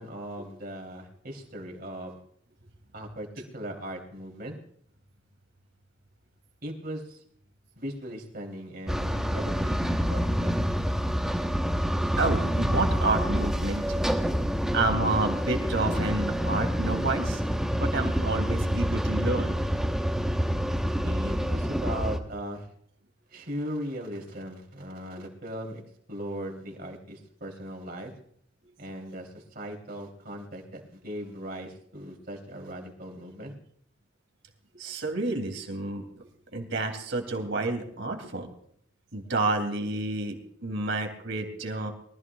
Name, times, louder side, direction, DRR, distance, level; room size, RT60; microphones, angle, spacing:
voice 1, 0.0-2.2 2.9-4.6 6.6-7.2 7.8-10.5 21.0-22.7 23.3-25.8 26.1-28.1 28.8-33.5, equal, 50° right, 2 dB, 3.4 m, -38 dB
sound 1, 8.9-22.2, equal, 5° right, 1.1 m, -27 dB
voice 2, 11.9-14.0 14.7-17.4 17.8-19.6 34.7-36.0 36.5-38.5 39.1-41.9, right 2 dB, 65° right, 4 dB, 3.0 m, -29 dB
23.5 x 14.5 x 2.4 m, 0.66 s
head